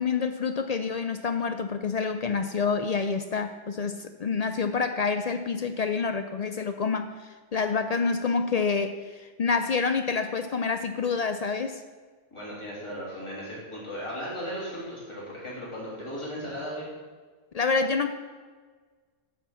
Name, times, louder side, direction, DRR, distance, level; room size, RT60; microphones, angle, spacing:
voice 1, 0.0-11.8 17.5-18.1, left 5 dB, 65° left, 8 dB, 0.4 m, -27 dB
voice 2, 12.3-16.8, equal, 25° left, -7 dB, 3.4 m, -36 dB
10.5 x 4.6 x 7.2 m, 1.5 s
omnidirectional pair, 1.3 m